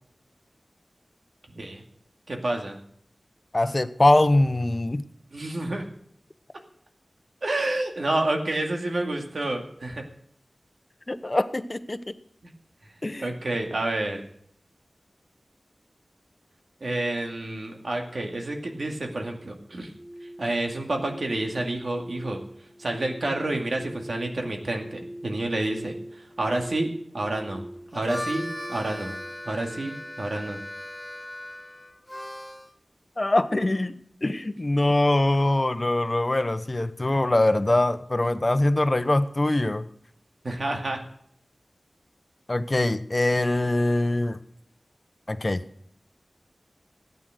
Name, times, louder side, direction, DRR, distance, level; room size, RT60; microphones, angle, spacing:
voice 1, 1.5-1.8 2.3-2.8 5.3-5.8 7.4-10.0 13.2-14.2 16.8-19.9 20.4-22.4 22.8-27.6 27.9-28.4 28.7-29.1 29.5-30.6 40.4-41.0, right 2 dB, 70° right, 2 dB, 2.3 m, -29 dB
voice 2, 3.5-5.0 11.1-12.1 13.0-13.3 33.2-39.9 42.5-44.4 45.3-45.6, left 1 dB, 40° left, 12 dB, 0.9 m, -23 dB
sound 1, 19.7-30.7, right 1 dB, 10° right, 2.5 m, -43 dB
Harmonica, 27.8-32.7, equal, 10° left, 1.1 m, -38 dB
14.5 x 9.5 x 6.6 m, 0.66 s
wide cardioid pair, 45°, 0 cm